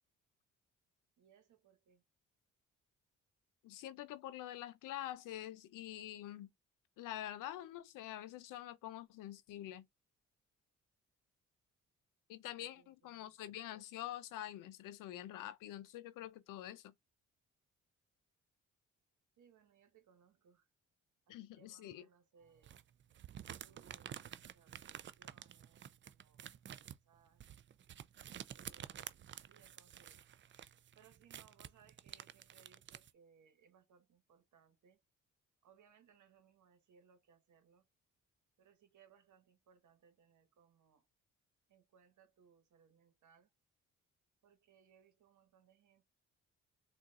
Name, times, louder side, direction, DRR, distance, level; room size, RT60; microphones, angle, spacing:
voice 1, 1.2-2.0 12.5-13.3 19.4-20.7 21.3-22.8 23.6-24.2 24.5-26.8 27.0-27.5 28.5-30.2 30.9-35.0 35.6-37.9 38.6-41.1 41.7-43.5 44.4-46.0, right 7 dB, 70° right, 1.2 m, -68 dB
voice 2, 3.6-6.5 7.0-9.9 12.3-16.9 21.3-22.1, left 13 dB, 85° left, 0.6 m, -46 dB
sound 1, 22.6-33.1, right 10 dB, 40° right, 0.4 m, -51 dB
3.9 x 2.5 x 2.4 m
supercardioid pair, 65°, 31 cm